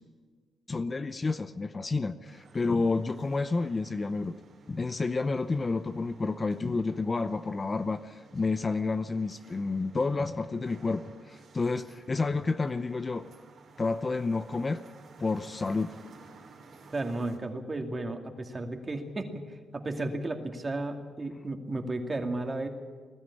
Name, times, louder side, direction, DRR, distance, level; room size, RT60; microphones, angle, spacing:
voice 1, 0.7-4.4 4.7-13.3 13.8-14.8 15.2-16.0, left 3 dB, 25° left, 11 dB, 0.7 m, -30 dB
sound 1, 2.2-17.4, right 4 dB, 55° right, 4.1 m, -55 dB
voice 2, 16.9-22.7, right 2 dB, 25° right, 4 dB, 2.4 m, -34 dB
20.5 x 13.5 x 9.9 m, 1.5 s
cardioid pair, 110°, 0 cm